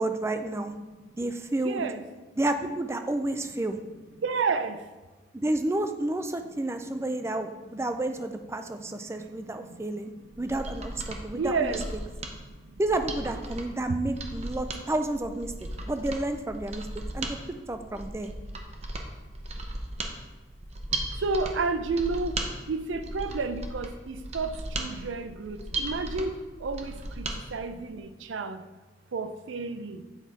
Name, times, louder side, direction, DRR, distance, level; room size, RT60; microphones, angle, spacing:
voice 1, 0.0-0.7 1.2-1.8 2.4-3.8 5.3-10.1 10.4-11.7 12.8-16.9 17.1-17.4 17.7-18.3, right 2 dB, 15° right, 8 dB, 0.4 m, -30 dB
voice 2, 1.6-2.0 4.2-4.9 7.4-7.5 8.9-9.8 10.1-10.3 11.3-12.8 13.8-14.0 21.2-22.4 22.7-28.6 29.1-30.0, right 4 dB, 90° right, 10 dB, 0.5 m, -32 dB
Mechanisms, 10.3-27.4 27.7-27.8, right 2 dB, 35° right, 0.8 m, -36 dB
8.0 x 4.2 x 4.5 m, 1.2 s
head